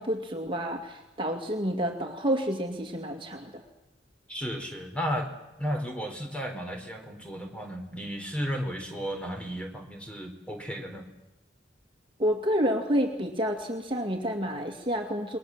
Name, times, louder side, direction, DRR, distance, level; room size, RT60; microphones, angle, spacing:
voice 1, 0.0-3.6 12.2-15.4, equal, 30° right, 2 dB, 2.4 m, -29 dB
voice 2, 4.3-5.3 5.6-11.1, equal, 5° left, 4 dB, 3.8 m, -34 dB
29.0 x 21.5 x 7.6 m, 0.96 s
head